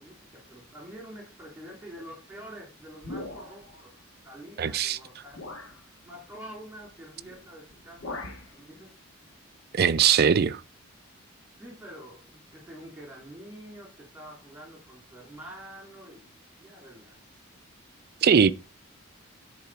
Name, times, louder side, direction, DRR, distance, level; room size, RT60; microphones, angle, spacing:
voice 1, 0.0-3.9 4.2-5.5 6.0-8.9 11.6-16.3 16.6-17.2, equal, 10° right, 3.1 m, -46 dB
sound 1, 3.0-3.8 4.7-4.8 5.3-5.8 7.2-7.4 7.7-8.5, left 2 dB, 65° left, 1.3 m, -40 dB
voice 2, 4.6-5.0 9.7-10.6 18.2-18.5, right 7 dB, 45° right, 0.4 m, -20 dB
10.5 x 4.2 x 4.7 m
head